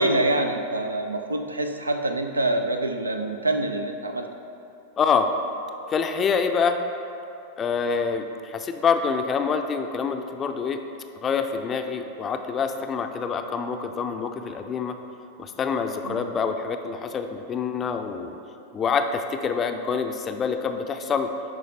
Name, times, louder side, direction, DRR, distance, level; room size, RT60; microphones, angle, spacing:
voice 1, 0.0-4.3 16.0-16.3, right 1 dB, 80° right, 6 dB, 0.5 m, -25 dB
voice 2, 5.0-5.3 5.9-6.8 7.6-10.8 11.2-15.0 15.4-18.3 18.7-21.3, left 6 dB, 25° left, 6 dB, 0.4 m, -26 dB
10.5 x 4.6 x 3.2 m, 2.8 s
figure-of-eight pair, 90°, 0 cm